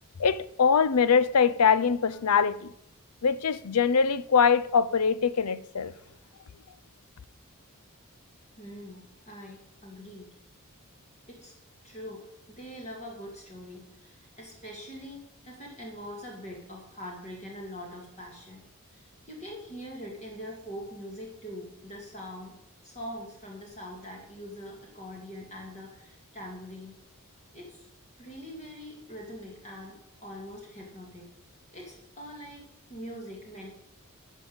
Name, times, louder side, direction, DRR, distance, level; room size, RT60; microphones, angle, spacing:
voice 1, 0.2-2.7 3.2-5.9, left 6 dB, 80° left, 0.6 m, -23 dB
voice 2, 8.6-10.3 11.3-11.5 11.8-18.6 18.9-22.5 22.8-27.0 27.5-27.8 28.2-31.3 31.7-33.7, equal, 30° left, 2.3 m, -43 dB
12.5 x 5.4 x 8.7 m
head